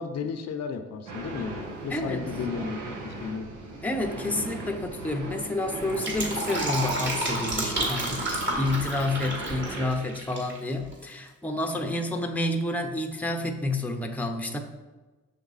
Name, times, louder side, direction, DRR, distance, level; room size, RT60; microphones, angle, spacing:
voice 1, 0.0-3.5, left 6 dB, 55° left, 7 dB, 0.7 m, -34 dB
sound 1, 1.1-9.9, right 2 dB, 85° right, 1.4 m, -38 dB
voice 2, 1.9-2.3 3.8-14.6, left 2 dB, 5° left, 3 dB, 0.7 m, -29 dB
Fill (with liquid), 5.8-10.6 10.8-10.9, right 1 dB, 40° right, 2.5 m, -30 dB
6.4 x 6.1 x 4.0 m, 1.2 s
cardioid pair, 90°, 30 cm